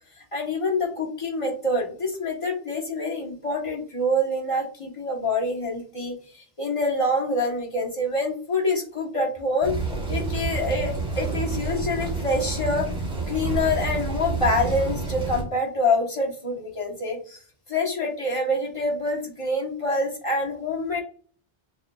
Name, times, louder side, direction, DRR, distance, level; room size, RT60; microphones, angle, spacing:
voice 1, 0.2-9.7 10.1-12.9 13.3-17.4 17.7-21.0, left 1 dB, 30° left, -2 dB, 1.1 m, -26 dB
sound 1, 9.6-15.4, right 3 dB, 25° right, 1.1 m, -29 dB
6.6 x 2.3 x 2.2 m, 0.43 s
omnidirectional pair, 1.0 m